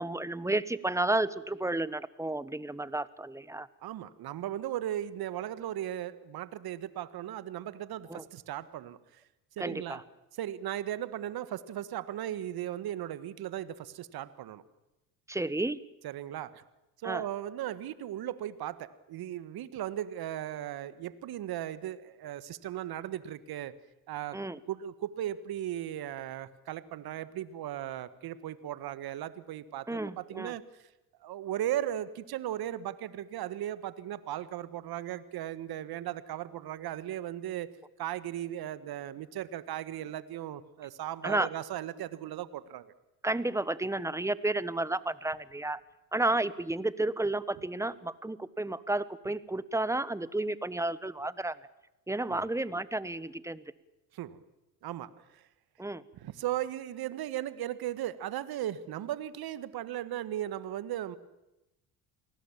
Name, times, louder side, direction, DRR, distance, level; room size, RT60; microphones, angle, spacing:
voice 1, 0.0-3.7 8.1-8.2 9.6-10.0 15.3-15.8 17.0-17.2 24.3-24.6 29.9-30.5 41.2-41.5 43.2-45.8 46.1-51.6 52.1-53.6 55.8-56.0, right 2 dB, 5° right, 17 dB, 1.3 m, -32 dB
voice 2, 3.8-9.2 9.6-10.0 10.4-14.6 16.0-16.6 17.0-23.7 24.1-24.4 24.7-30.6 31.2-37.7 38.0-42.9 52.3-52.4 54.1-54.4 54.8-55.4 56.2-61.2, right 12 dB, 55° right, 15 dB, 1.7 m, -37 dB
28.5 x 19.5 x 7.4 m, 0.94 s
hypercardioid pair, 65°, 43 cm